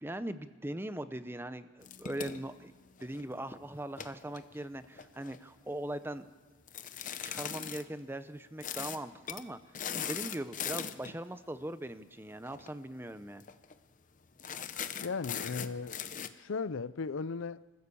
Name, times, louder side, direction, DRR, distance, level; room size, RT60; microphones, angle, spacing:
voice 1, 0.0-2.7 3.0-6.3 7.2-9.6 9.9-13.4, right 1 dB, 10° right, 0.7 m, -40 dB
sound 1, 1.8-3.3 3.8-5.4 6.7-7.8 8.6-9.0 9.3-9.4 9.7-11.2 12.5-12.7 13.0-13.1 13.4-13.7 14.4-16.3, left 8 dB, 40° left, 0.8 m, -40 dB
voice 2, 15.0-16.0 16.3-17.6, left 4 dB, 70° left, 0.5 m, -36 dB
26.5 x 15.0 x 7.0 m
head